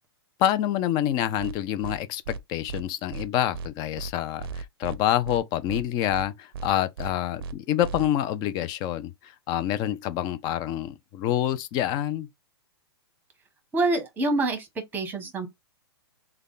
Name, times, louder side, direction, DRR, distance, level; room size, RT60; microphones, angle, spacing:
voice 1, 0.4-12.3, left 11 dB, 30° left, 0.4 m, -27 dB
sound 1, 1.4-1.5 1.8-2.0 2.2-2.4 2.7-2.8 3.1-3.3 3.5-3.7 4.0-4.1 4.4-5.0 5.2-5.4 5.7-5.8 6.1-6.3 6.5-6.7 7.0-7.1 7.4-7.5 7.8-8.0, right 4 dB, 55° right, 0.5 m, -35 dB
voice 2, 13.7-14.7 14.9-15.5, right 2 dB, 15° right, 1.0 m, -26 dB
3.3 x 2.2 x 3.9 m
hypercardioid pair, 135°, 14 cm